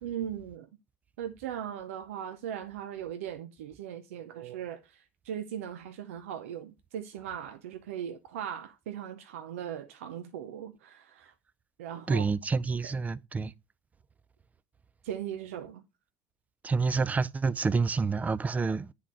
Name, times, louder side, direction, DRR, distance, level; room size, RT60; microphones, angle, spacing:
voice 1, 0.0-0.7 1.2-11.3 11.8-12.3 15.0-15.8, right 9 dB, 90° right, 0.6 m, -39 dB
voice 2, 12.1-13.5 16.6-18.9, right 4 dB, 20° right, 0.4 m, -28 dB
9.8 x 3.8 x 3.0 m
supercardioid pair, 85°, 7 cm